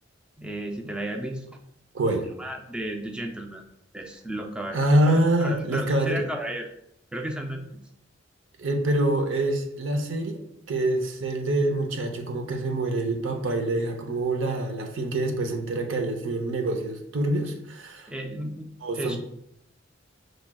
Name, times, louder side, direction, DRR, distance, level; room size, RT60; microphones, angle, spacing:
voice 1, 0.4-1.6 2.4-3.6 3.9-4.8 5.1-6.7 7.1-7.8 18.1-18.7 19.0-19.2, right 1 dB, 5° right, 2 dB, 0.3 m, -34 dB
voice 2, 1.9-2.3 4.7-6.3 8.6-10.4 10.7-18.1 18.8-19.2, right 1 dB, 80° right, 4 dB, 0.7 m, -25 dB
6.0 x 3.2 x 2.2 m, 0.76 s
head